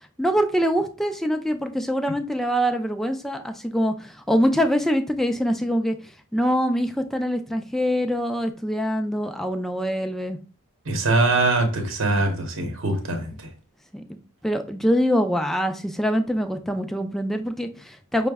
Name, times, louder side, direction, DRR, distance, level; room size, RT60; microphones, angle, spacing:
voice 1, 0.2-6.0 6.3-10.4 13.9-14.0 14.4-18.3, equal, ahead, 6 dB, 0.3 m, -24 dB
voice 2, 10.9-13.3, right 2 dB, 60° right, 5 dB, 0.8 m, -22 dB
5.6 x 2.1 x 3.4 m, 0.37 s
head